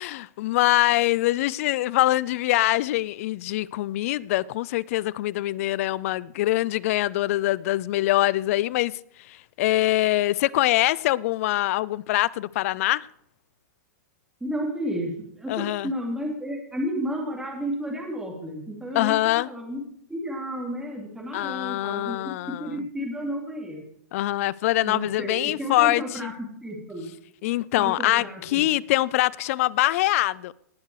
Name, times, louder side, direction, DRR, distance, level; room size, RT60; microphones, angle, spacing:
voice 1, 0.0-8.9 9.3-13.1 15.5-15.9 18.9-19.5 21.3-22.8 24.1-26.3 27.4-30.5, left 16 dB, 55° left, 0.4 m, -24 dB
voice 2, 14.4-15.1 15.4-19.8 20.1-23.8 24.8-26.3 26.6-27.1 27.8-28.6, equal, 5° right, 3.2 m, -32 dB
18.5 x 6.7 x 4.8 m
hypercardioid pair, 125°, 9 cm